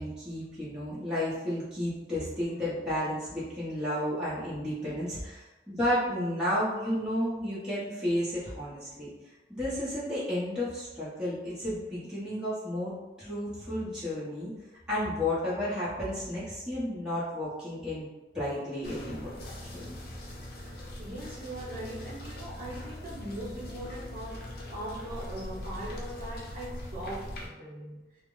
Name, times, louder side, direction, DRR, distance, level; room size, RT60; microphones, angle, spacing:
voice 1, 0.0-9.1 9.5-14.5 14.9-18.1 18.3-19.3 19.6-19.9, left 1 dB, 5° right, -11 dB, 0.8 m, -32 dB
sound 1, 18.8-27.5, left 1 dB, 60° left, 0.6 m, -41 dB
voice 2, 21.0-28.2, right 1 dB, 45° right, -7 dB, 0.8 m, -40 dB
2.1 x 2.0 x 3.7 m, 1.1 s
head